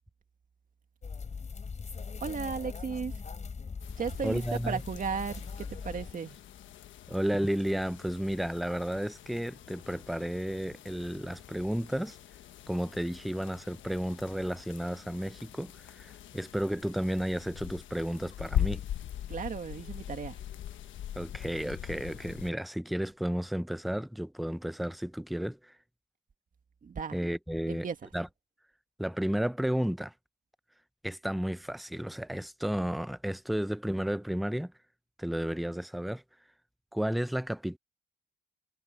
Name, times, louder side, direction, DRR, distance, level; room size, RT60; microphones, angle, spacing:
sound 1, 1.0-6.1, left 5 dB, 35° left, 4.3 m, -40 dB
voice 1, 2.2-3.1 4.0-6.4 19.3-20.4 26.8-27.2 27.7-28.0, right 6 dB, 45° right, 2.2 m, -35 dB
sound 2, 3.8-22.5, left 11 dB, 75° left, 1.3 m, -41 dB
voice 2, 4.2-4.8 7.1-12.2 12.7-18.8 21.2-25.7 27.1-27.9 28.1-28.3 29.0-30.1 31.0-34.7 35.2-36.2 36.9-37.8, equal, ahead, 0.5 m, -32 dB
cardioid pair, 90°, 20 cm